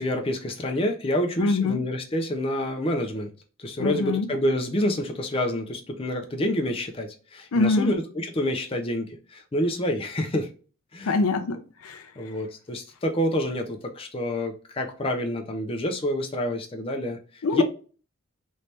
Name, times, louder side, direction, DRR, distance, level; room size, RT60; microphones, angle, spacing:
voice 1, 0.0-3.3 3.6-10.5 10.9-11.2 12.2-17.6, left 1 dB, 25° left, 0.5 m, -28 dB
voice 2, 1.4-1.8 3.8-4.3 7.5-7.9 11.0-12.1 17.4-17.6, left 3 dB, 85° left, 0.5 m, -24 dB
3.2 x 2.8 x 3.2 m
head